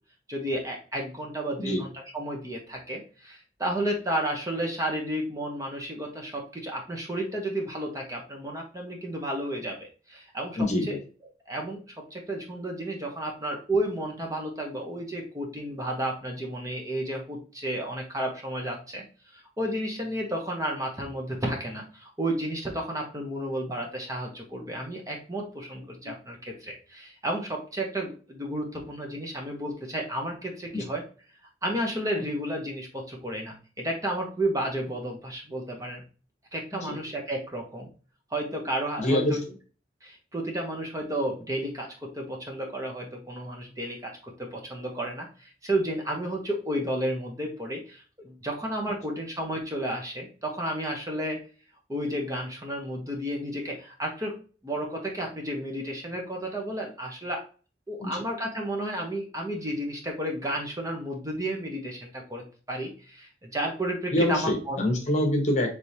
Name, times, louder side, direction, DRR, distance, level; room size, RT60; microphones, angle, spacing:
voice 1, 0.3-11.0 11.5-11.8 12.1-31.0 31.6-36.0 36.5-37.9 38.3-39.4 40.0-51.4 51.9-54.4 54.6-57.4 57.9-64.8, right 1 dB, 20° right, 0 dB, 0.9 m, -32 dB
voice 2, 10.6-11.0 30.7-30.8 36.8-37.0 39.0-39.4 58.0-58.2 64.1-65.8, left 1 dB, 40° left, 2 dB, 1.1 m, -25 dB
4.9 x 3.4 x 2.8 m, 0.37 s
head